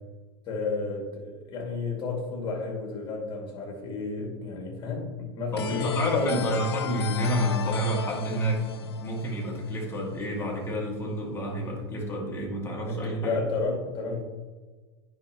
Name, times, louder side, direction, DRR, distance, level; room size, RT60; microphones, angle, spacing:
voice 1, 0.5-6.5 12.9-14.2, left 3 dB, 35° left, 0 dB, 2.3 m, -32 dB
voice 2, 5.5-13.4, equal, 20° left, -1 dB, 2.0 m, -29 dB
sound 1, 5.6-10.2, left 8 dB, 75° left, 0.4 m, -36 dB
9.5 x 5.6 x 3.0 m, 1.4 s
figure-of-eight pair, 85°, 14 cm